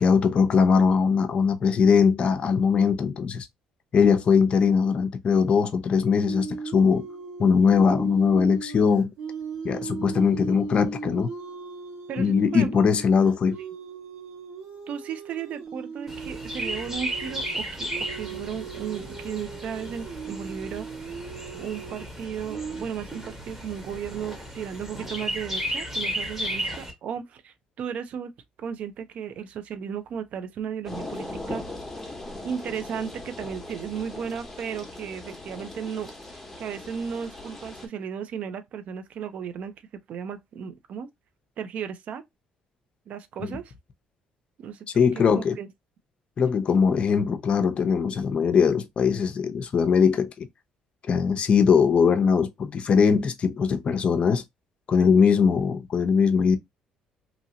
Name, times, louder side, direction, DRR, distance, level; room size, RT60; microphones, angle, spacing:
voice 1, 0.0-3.5 3.9-7.1 7.4-9.1 9.6-11.3 12.2-13.6 43.4-43.6 44.9-45.6 46.4-50.5 51.1-54.4 54.9-56.6, left 6 dB, 45° left, 0.6 m, -21 dB
sound 1, 6.2-22.9, right 5 dB, 85° right, 1.4 m, -38 dB
voice 2, 12.1-12.7 14.9-20.9 21.6-28.3 28.6-31.6 32.4-39.7 40.1-41.1 41.6-42.2 43.1-43.7 44.6-44.9 45.1-45.7, right 7 dB, 60° right, 0.5 m, -35 dB
Chirp tweet, 16.1-26.9, equal, 15° right, 1.3 m, -34 dB
sound 2, 30.8-37.9, left 2 dB, 10° left, 1.0 m, -39 dB
2.9 x 2.7 x 2.7 m
cardioid pair, 100°, 3 cm